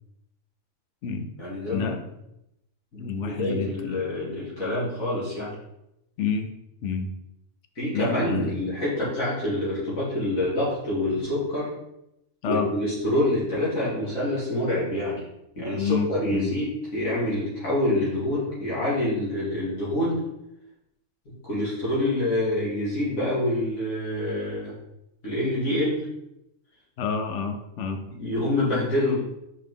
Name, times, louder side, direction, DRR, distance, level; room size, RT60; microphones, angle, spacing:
voice 1, 1.4-2.1 2.9-5.5 7.8-11.7 12.5-15.2 15.6-20.2 21.3-24.7 25.2-26.0 28.1-29.1, left 1 dB, 80° left, -8 dB, 2.7 m, -26 dB
voice 2, 3.0-4.0 6.2-6.5 6.8-7.1 7.9-8.7 12.4-12.7 15.7-16.5 27.0-28.0, left 5 dB, 65° left, 7 dB, 1.0 m, -28 dB
5.8 x 4.9 x 3.6 m, 0.84 s
omnidirectional pair, 1.4 m